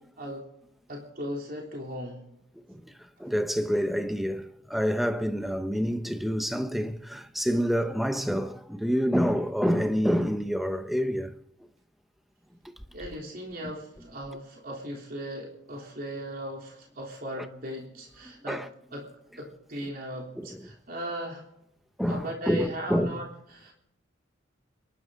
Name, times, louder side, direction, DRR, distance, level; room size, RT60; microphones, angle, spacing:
voice 1, 0.9-2.2 12.9-18.6 18.9-19.1 19.4-21.4 22.1-23.7, equal, 50° right, 3.5 m, -37 dB
voice 2, 3.2-11.3 18.5-18.7 20.4-20.5 22.0-23.2, equal, ahead, 0.9 m, -27 dB
29.5 x 12.0 x 4.0 m
head